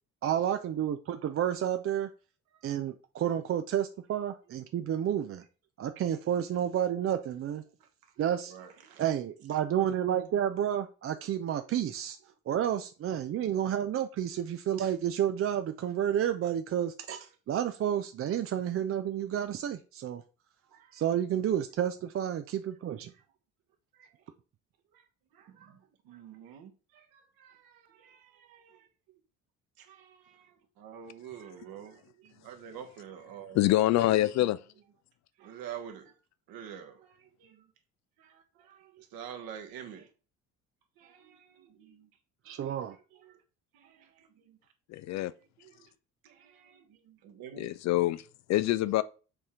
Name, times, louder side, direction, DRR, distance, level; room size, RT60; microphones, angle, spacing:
voice 1, 0.2-2.1 2.6-5.4 5.8-7.6 8.2-8.5 9.0-12.2 12.5-20.2 20.9-23.1 42.4-43.0, right 10 dB, 35° right, 0.5 m, -30 dB
voice 2, 2.5-3.0 4.5-4.6 7.8-7.9 8.1-9.1 9.5-9.6 11.5-11.7 20.6-21.0 23.1-23.2 23.9-24.3 24.9-25.0 25.3-29.2 29.8-33.7 35.4-36.2 36.5-37.7 38.2-40.1 41.0-42.1 42.5-43.4 43.7-44.6 45.6-45.9 46.2-47.7, right 9 dB, 60° right, 1.4 m, -49 dB
voice 3, 33.5-34.6 44.9-45.3 47.6-48.2 48.5-49.0, left 15 dB, 45° left, 0.4 m, -25 dB
6.8 x 4.2 x 3.7 m
figure-of-eight pair, 50°, 41 cm